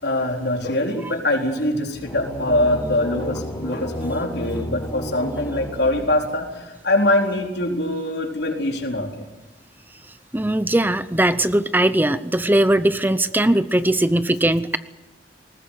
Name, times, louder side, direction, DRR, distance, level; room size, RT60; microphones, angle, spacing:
voice 1, 0.0-9.2, left 1 dB, 65° left, 2 dB, 4.2 m, -23 dB
sound 1, 1.9-6.6, equal, 20° left, 4.6 m, -32 dB
voice 2, 10.3-14.8, right 1 dB, 10° right, 13 dB, 0.7 m, -19 dB
20.5 x 19.5 x 9.3 m, 1.1 s
head